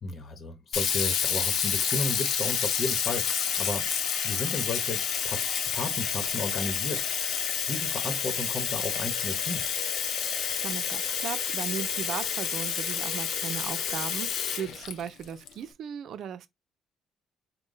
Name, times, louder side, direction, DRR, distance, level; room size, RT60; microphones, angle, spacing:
voice 1, 0.0-3.9 4.2-5.4 5.7-9.7, left 3 dB, 45° left, 1.1 m, -34 dB
Sink (filling or washing), 0.7-15.5, left 7 dB, 70° left, 0.7 m, -29 dB
voice 2, 10.6-16.5, right 8 dB, 65° right, 0.6 m, -37 dB
3.8 x 2.2 x 3.9 m
cardioid pair, 90°, 0 cm